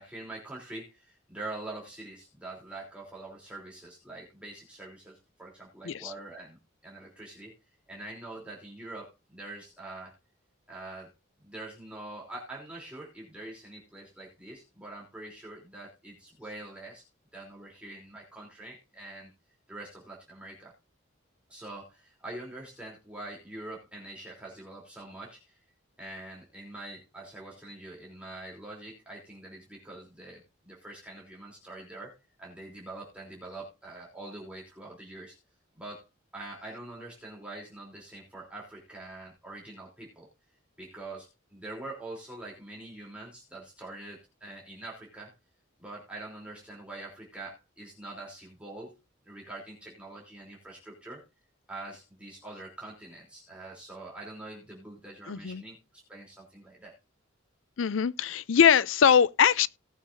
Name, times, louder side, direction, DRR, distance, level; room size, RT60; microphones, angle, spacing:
voice 1, 0.0-6.6 6.8-7.5 7.9-10.1 10.7-11.1 11.4-17.0 17.3-19.3 19.7-20.7 21.5-25.6 26.0-35.4 35.8-36.0 36.3-40.3 40.8-45.3 45.8-48.9 49.2-51.2 51.7-55.8 56.1-56.9, right 2 dB, 5° right, 3.4 m, -44 dB
voice 2, 55.3-55.6 57.8-59.7, left 7 dB, 75° left, 0.5 m, -22 dB
18.5 x 7.3 x 2.7 m
head